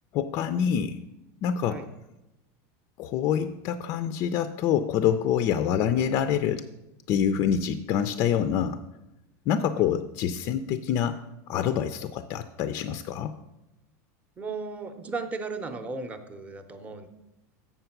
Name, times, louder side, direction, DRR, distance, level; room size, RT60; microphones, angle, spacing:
voice 1, 0.1-1.0 1.4-1.8 3.0-6.7 7.1-8.8 9.5-11.2 11.5-13.4, left 9 dB, 35° left, 10 dB, 0.4 m, -26 dB
voice 2, 14.4-17.1, right 4 dB, 15° right, 7 dB, 0.6 m, -35 dB
7.1 x 6.8 x 5.8 m, 0.94 s
supercardioid pair, 160°, 9 cm